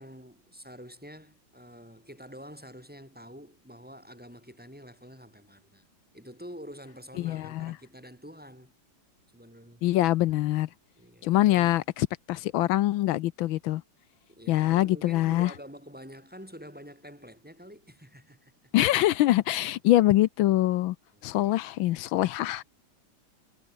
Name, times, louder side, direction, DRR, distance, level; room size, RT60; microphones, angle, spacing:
voice 1, 0.0-5.8 6.1-8.7 9.3-9.9 11.0-11.8 14.3-18.5 21.1-21.8, equal, 5° right, 5.9 m, -47 dB
voice 2, 7.2-7.8 9.8-10.7 11.2-13.8 14.5-15.5 18.7-20.9 21.2-22.6, left 15 dB, 75° left, 1.4 m, -24 dB
omnidirectional pair, 2.3 m